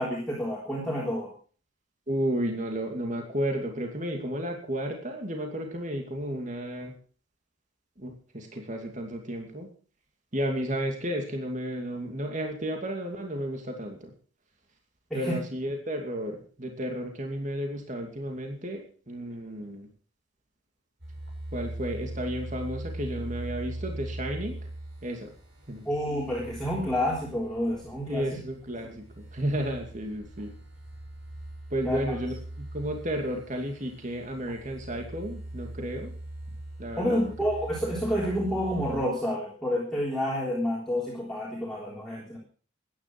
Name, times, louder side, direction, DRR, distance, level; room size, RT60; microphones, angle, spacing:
voice 1, 0.0-1.3 15.1-15.4 25.9-28.3 31.8-32.2 37.0-42.4, equal, ahead, -5 dB, 3.5 m, -29 dB
voice 2, 2.1-6.9 8.0-9.7 10.3-14.1 15.1-19.9 21.5-24.6 25.0-25.3 25.7-25.9 28.1-30.5 31.7-36.1 36.8-37.3, equal, 40° right, 3 dB, 2.5 m, -32 dB
sound 1, 21.0-39.1, right 1 dB, 65° right, 7.3 m, -41 dB
14.5 x 10.5 x 6.1 m, 0.42 s
head